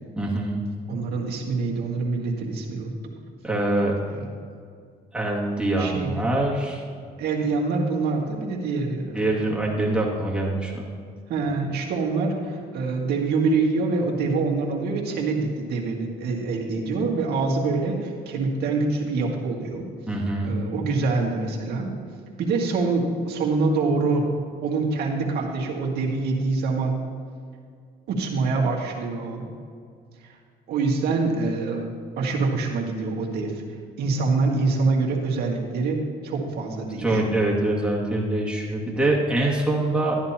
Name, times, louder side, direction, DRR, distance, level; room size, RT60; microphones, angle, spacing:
voice 1, 0.2-0.6 3.4-3.9 5.1-6.8 9.1-10.9 20.1-20.5 37.0-40.2, right 2 dB, 5° right, -4 dB, 2.2 m, -24 dB
voice 2, 0.9-3.1 4.0-4.3 5.8-6.3 7.2-9.4 11.3-19.8 20.4-21.9 22.4-24.3 24.6-27.0 28.1-29.5 30.2-30.4 30.7-31.8 32.2-33.6 34.0-37.2, right 3 dB, 70° right, -1 dB, 2.0 m, -25 dB
13.0 x 10.5 x 2.9 m, 2.2 s
cardioid pair, 110°, 17 cm